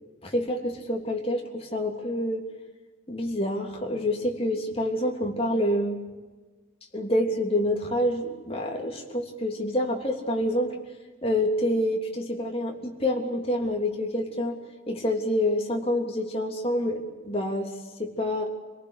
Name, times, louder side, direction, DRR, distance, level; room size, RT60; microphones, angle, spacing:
voice 1, 0.2-2.4 3.1-6.0 6.9-10.8 11.2-14.6 14.9-17.7 18.0-18.5, left 1 dB, 30° left, 1 dB, 3.2 m, -27 dB
26.0 x 18.5 x 8.2 m, 1.3 s
head